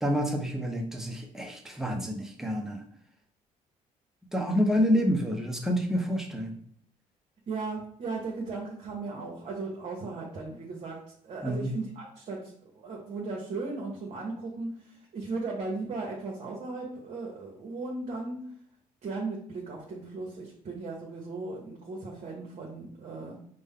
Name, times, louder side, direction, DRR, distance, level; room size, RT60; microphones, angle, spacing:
voice 1, 0.0-2.8 4.3-6.6 11.4-11.7, equal, 5° right, 2 dB, 0.7 m, -28 dB
voice 2, 7.5-11.0 11.2-12.4 12.7-18.4 19.0-23.4, right 3 dB, 50° right, -2 dB, 1.0 m, -36 dB
5.2 x 2.1 x 3.6 m, 0.62 s
cardioid pair, 115°, 14 cm